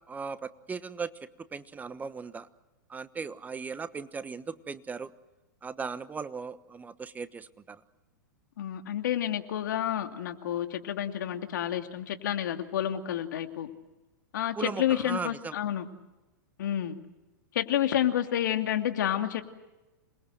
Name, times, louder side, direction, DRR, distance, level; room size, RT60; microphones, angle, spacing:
voice 1, 0.1-2.5 2.9-5.1 5.6-7.8 14.5-15.5, right 5 dB, 15° right, 14 dB, 1.2 m, -37 dB
voice 2, 8.6-13.7 14.3-15.9 16.6-17.0 17.5-19.4, left 11 dB, 70° left, 5 dB, 2.8 m, -29 dB
27.0 x 21.5 x 7.9 m, 1.1 s
hypercardioid pair, 110°, 11 cm